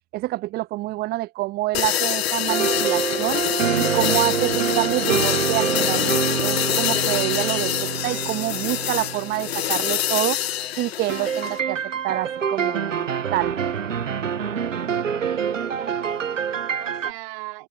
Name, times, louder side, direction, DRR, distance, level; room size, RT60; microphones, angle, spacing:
voice 1, 0.1-3.5 3.7-6.1 6.4-10.4 10.8-11.8 12.0-13.5, right 17 dB, 25° right, 1.5 m, -27 dB
sound 1, 1.7-11.6, left 11 dB, 55° left, 0.8 m, -25 dB
sound 2, 2.5-10.2 11.1-17.1, right 7 dB, 75° right, 1.0 m, -26 dB
voice 2, 15.2-17.7, right 24 dB, 40° right, 4.3 m, -41 dB
figure-of-eight pair, 110°, 38 cm